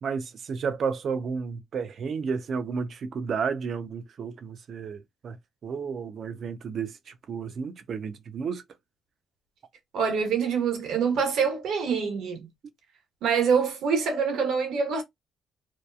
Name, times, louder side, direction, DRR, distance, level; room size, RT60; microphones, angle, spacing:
voice 1, 0.0-8.6, right 5 dB, 60° right, 0.5 m, -32 dB
voice 2, 9.9-12.5 13.2-15.0, right 6 dB, 80° right, 1.1 m, -25 dB
2.8 x 2.3 x 2.3 m
cardioid pair, 75°, 0 cm